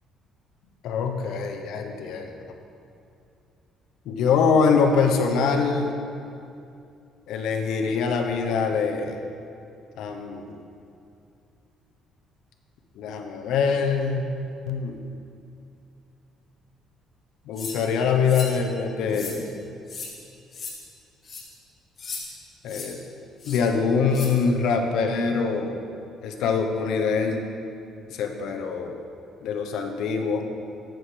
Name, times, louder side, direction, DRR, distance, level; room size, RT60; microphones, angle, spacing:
voice 1, 0.8-2.3 4.1-5.9 7.3-9.2 10.0-10.6 13.0-14.2 14.7-15.0 17.5-19.5 22.6-23.0 23.5-25.8 26.2-27.4 28.1-28.9 29.4-30.4, left 5 dB, 65° left, 4 dB, 1.0 m, -24 dB
sound 1, 17.6-17.8 18.3-18.5 19.1-19.4 19.9-20.1 20.5-20.7 21.2-21.4 22.0-22.2 22.7-22.9 23.4-23.6 24.1-24.3, left 4 dB, 30° left, 1.8 m, -36 dB
10.0 x 7.8 x 5.1 m, 2.5 s
cardioid pair, 165°, 0 cm